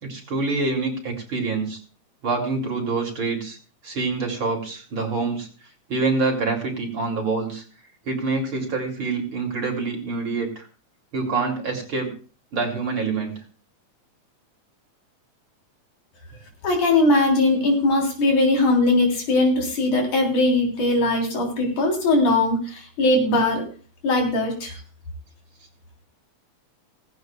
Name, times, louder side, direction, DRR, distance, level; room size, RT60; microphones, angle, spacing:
voice 1, 0.0-1.8 2.2-3.6 3.8-5.5 5.9-7.6 8.0-10.7 11.1-12.1 12.5-13.4, right 3 dB, 45° right, 2 dB, 3.1 m, -26 dB
voice 2, 16.6-23.6 24.0-24.7, left 2 dB, 75° left, 1 dB, 5.0 m, -20 dB
17.5 x 16.0 x 2.3 m, 0.38 s
omnidirectional pair, 3.5 m